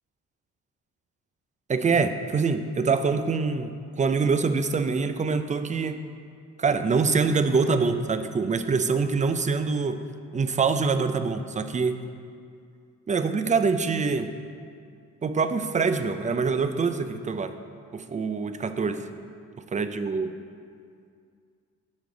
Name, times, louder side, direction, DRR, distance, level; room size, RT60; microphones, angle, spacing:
voice 1, 1.7-6.0 6.6-10.0 10.3-12.0 13.1-14.3 15.2-17.5 17.9-19.1 19.7-20.3, right 4 dB, 25° right, 10 dB, 0.5 m, -25 dB
11.5 x 5.1 x 3.9 m, 2.3 s
cardioid pair, 90°, 30 cm